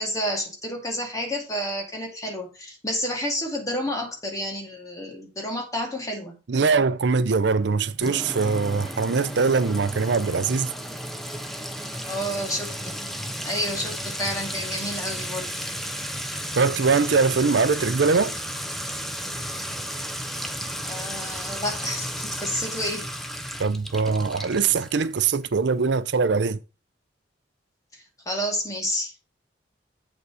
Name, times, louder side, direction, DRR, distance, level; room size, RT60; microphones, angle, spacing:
voice 1, 0.0-6.4 12.1-13.0 13.4-15.5 20.8-23.1 27.9-29.1, equal, 20° left, 2.1 m, -30 dB
voice 2, 6.5-10.7 16.5-18.3 23.6-26.6, right 4 dB, 65° right, 0.5 m, -22 dB
Sink (filling or washing) / Trickle dribble / Fill (with liquid), 8.0-25.5, equal, ahead, 0.7 m, -33 dB
8.1 x 5.1 x 4.8 m
head